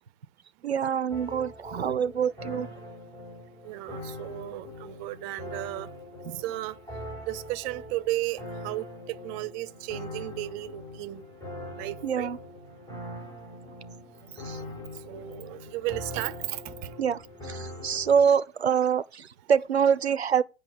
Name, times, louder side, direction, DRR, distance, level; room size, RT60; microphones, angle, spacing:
voice 1, 0.6-2.7 12.0-12.4 14.4-14.6 17.0-20.4, right 7 dB, 85° right, 0.5 m, -25 dB
sound 1, 1.1-18.2, left 1 dB, 10° left, 6.3 m, -42 dB
voice 2, 3.6-5.9 6.4-6.8 7.3-11.2 11.8-12.3 15.1-16.9, right 17 dB, 35° right, 0.6 m, -34 dB
8.2 x 6.0 x 5.3 m
figure-of-eight pair, 90°, 31 cm